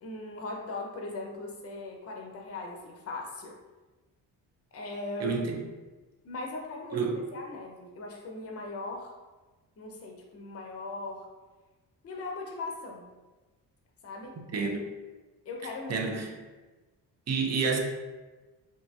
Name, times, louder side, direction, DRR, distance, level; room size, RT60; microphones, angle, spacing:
voice 1, 0.0-3.5 4.7-5.5 6.2-9.1 9.8-11.3 12.0-13.1 14.0-14.4 15.5-16.1, left 2 dB, 35° left, 1 dB, 0.6 m, -39 dB
voice 2, 5.2-5.6 6.9-7.2 14.5-14.8 15.9-16.3 17.3-17.8, right 5 dB, 40° right, 2 dB, 0.5 m, -29 dB
2.7 x 2.5 x 2.3 m, 1.2 s
supercardioid pair, 60°, 43 cm